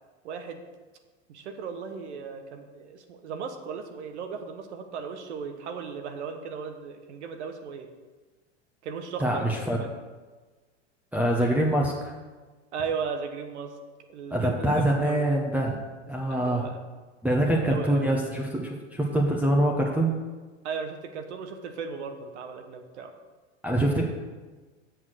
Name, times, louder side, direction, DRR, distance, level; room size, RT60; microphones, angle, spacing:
voice 1, 0.2-0.6 1.3-7.9 8.8-9.9 12.7-13.7 14.1-15.3 16.1-16.8 17.4-18.1 20.6-23.1, right 6 dB, 75° right, 6 dB, 1.2 m, -36 dB
voice 2, 9.2-9.8 11.1-12.1 14.3-15.8 16.1-16.7 17.2-20.1 23.6-24.1, right 1 dB, 5° right, -1 dB, 1.0 m, -24 dB
7.2 x 6.4 x 6.4 m, 1.3 s
hypercardioid pair, 105°, 35 cm